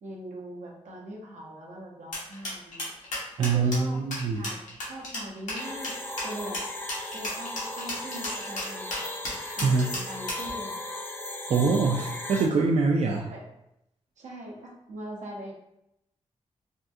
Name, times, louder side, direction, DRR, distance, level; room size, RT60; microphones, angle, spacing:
voice 1, 0.0-2.9 3.4-5.9 6.2-6.6 7.1-9.0 9.6-10.8 13.3-13.5 14.2-15.5, right 1 dB, 85° right, -2 dB, 0.8 m, -41 dB
sound 1, 2.1-10.5, left 1 dB, 85° left, 1.1 m, -34 dB
voice 2, 3.4-4.4 9.6-9.9 11.5-13.3, right 4 dB, 60° right, 0 dB, 0.4 m, -24 dB
sound 2, 5.6-12.5, left 1 dB, 15° left, 0.4 m, -37 dB
3.5 x 2.3 x 2.6 m, 0.83 s
cardioid pair, 65°, 12 cm